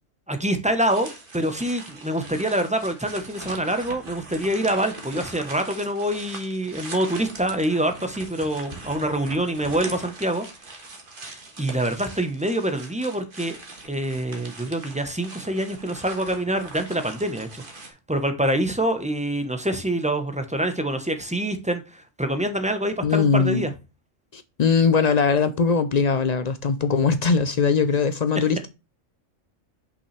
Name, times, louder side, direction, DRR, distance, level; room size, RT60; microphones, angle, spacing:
voice 1, 0.3-10.5 11.2-13.6 13.8-17.6 18.1-23.7, right 1 dB, 5° right, 0.8 m, -26 dB
sound 1, 0.9-17.9, right 3 dB, 45° right, 1.6 m, -41 dB
voice 2, 23.0-23.6 24.3-28.7, left 5 dB, 65° left, 0.4 m, -21 dB
6.1 x 5.5 x 3.2 m
omnidirectional pair, 1.3 m